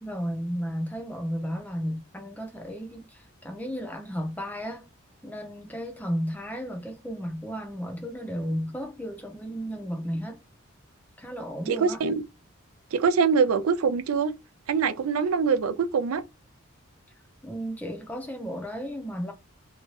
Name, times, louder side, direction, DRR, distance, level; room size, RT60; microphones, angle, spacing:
voice 1, 0.0-4.9 5.2-10.4 11.2-12.0 17.4-19.3, equal, 10° left, 0.6 m, -33 dB
voice 2, 11.7-12.1 12.9-14.3 14.7-16.2, right 5 dB, 85° right, 0.4 m, -23 dB
2.7 x 2.2 x 3.1 m
head